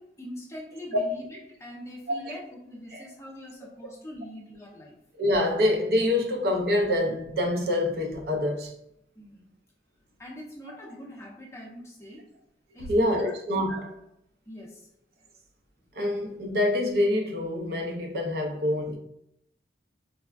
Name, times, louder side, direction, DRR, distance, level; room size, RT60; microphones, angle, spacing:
voice 1, 0.0-5.0 9.2-9.5 10.2-12.2 12.7-13.3 14.5-14.9, equal, 15° left, 0.6 m, -43 dB
voice 2, 5.2-8.7 12.9-14.0 15.9-19.0, left 1 dB, 60° right, 0.5 m, -26 dB
3.4 x 2.1 x 2.3 m
head